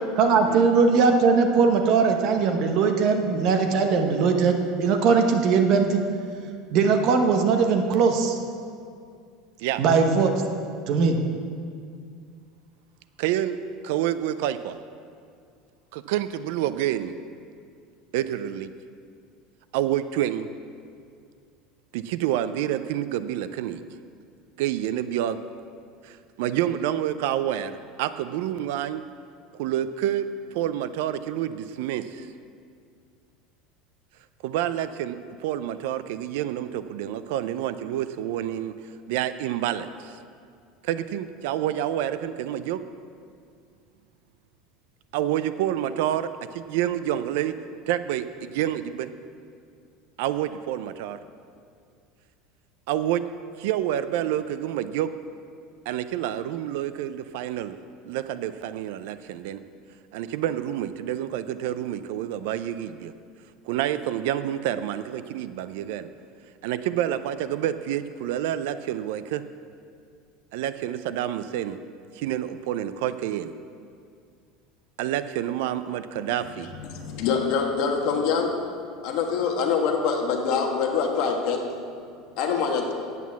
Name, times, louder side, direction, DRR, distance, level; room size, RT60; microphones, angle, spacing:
voice 1, 0.2-6.0 6.7-8.4 9.8-10.3 10.9-11.2, right 5 dB, 40° right, 5 dB, 0.9 m, -20 dB
voice 2, 13.2-13.6 13.8-14.8 15.9-17.1 18.1-18.7 19.7-20.5 21.9-23.8 24.6-25.4 26.0-29.0 29.5-32.3 34.4-38.7 39.1-40.2 40.8-42.8 45.1-47.6 47.9-49.1 50.2-51.2 52.9-53.2 53.6-55.1 55.9-57.8 58.0-59.6 60.1-63.1 63.6-66.1 66.6-69.4 70.5-71.8 72.1-73.5 75.0-76.7, right 11 dB, 65° right, 13 dB, 0.4 m, -28 dB
voice 3, 76.9-78.5 79.0-81.6 82.4-82.9, left 6 dB, 50° left, 2 dB, 1.4 m, -24 dB
9.2 x 8.2 x 7.2 m, 2.3 s
cardioid pair, 175°, 0 cm